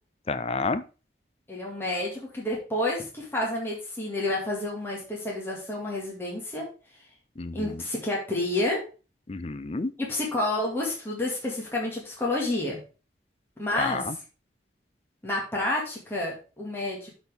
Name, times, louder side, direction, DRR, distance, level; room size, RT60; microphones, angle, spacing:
voice 1, 0.3-0.8 7.4-7.8 9.3-9.9 13.8-14.2, left 3 dB, 35° left, 0.5 m, -30 dB
voice 2, 1.5-6.7 7.5-8.8 10.0-12.8 13.6-14.2 15.2-17.1, left 1 dB, 10° left, 2.0 m, -29 dB
12.0 x 4.4 x 3.5 m
head